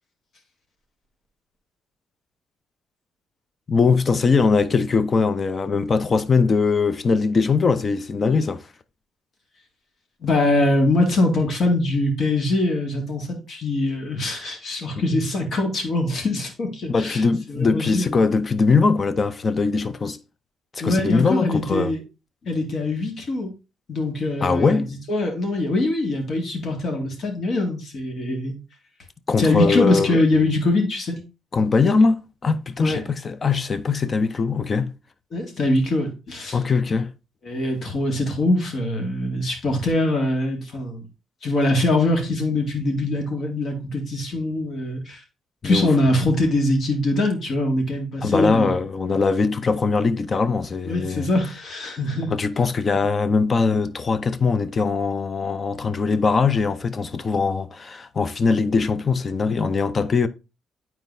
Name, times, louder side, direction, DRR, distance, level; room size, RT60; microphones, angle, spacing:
voice 1, 3.7-8.7 15.0-15.1 16.9-20.2 20.7-21.9 24.4-25.0 29.3-30.2 31.5-34.9 36.5-37.1 45.6-45.9 48.2-51.3 52.3-60.3, left 4 dB, 40° left, 0.6 m, -21 dB
voice 2, 10.2-17.2 17.5-18.2 20.8-22.0 22.4-23.5 23.9-28.6 29.4-31.2 32.8-33.0 35.3-36.6 37.5-41.0 41.4-45.2 45.6-48.7 50.8-52.3, left 2 dB, 55° left, 2.0 m, -23 dB
9.1 x 4.5 x 2.6 m
cardioid pair, 90°, 0 cm